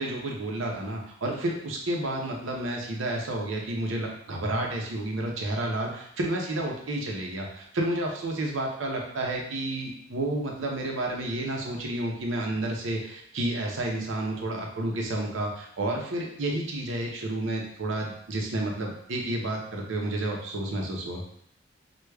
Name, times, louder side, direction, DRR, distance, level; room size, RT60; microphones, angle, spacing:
voice 1, 0.0-21.2, right 1 dB, 85° right, 0 dB, 0.7 m, -30 dB
4.7 x 2.3 x 2.2 m, 0.67 s
head